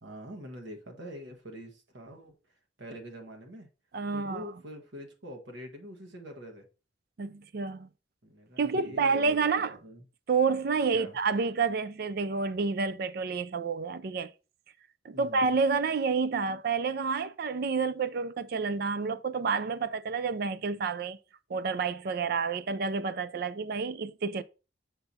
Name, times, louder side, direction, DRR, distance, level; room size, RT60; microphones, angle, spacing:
voice 1, 0.0-2.4 2.8-3.7 4.1-6.6 8.2-10.0 10.9-11.2 15.1-15.5, equal, 85° right, 1.3 m, -45 dB
voice 2, 3.9-4.4 7.2-7.9 8.6-9.8 10.3-14.3 15.0-21.2 21.5-24.4, right 5 dB, 55° right, 0.4 m, -29 dB
6.7 x 5.8 x 2.7 m
head